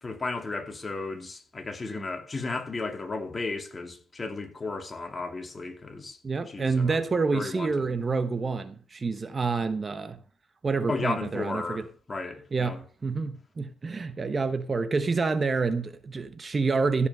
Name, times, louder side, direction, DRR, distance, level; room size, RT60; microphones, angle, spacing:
voice 1, 0.0-6.2 6.5-7.0 7.3-8.0 10.9-12.8, left 3 dB, 25° left, 2.4 m, -34 dB
voice 2, 6.2-10.2 10.6-11.8 12.5-17.1, right 4 dB, 30° right, 0.9 m, -28 dB
15.0 x 5.8 x 5.5 m
cardioid pair, 90°, 0 cm